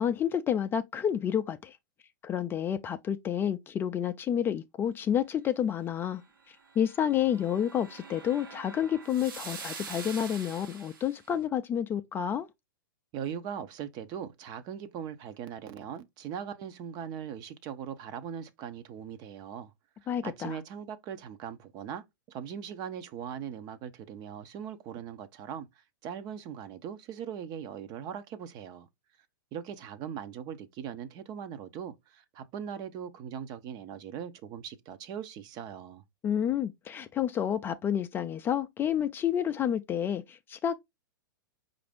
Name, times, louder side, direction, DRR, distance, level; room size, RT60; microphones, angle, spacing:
voice 1, 0.0-1.8 2.2-6.2 6.5-12.5 20.1-20.6 36.2-40.7, left 9 dB, 20° left, 0.4 m, -29 dB
sound 1, 6.6-11.2, right 5 dB, 75° right, 1.2 m, -45 dB
voice 2, 13.1-19.7 20.0-28.9 29.5-36.0, right 8 dB, 35° right, 0.6 m, -40 dB
4.8 x 2.5 x 3.4 m
hypercardioid pair, 120°, 11 cm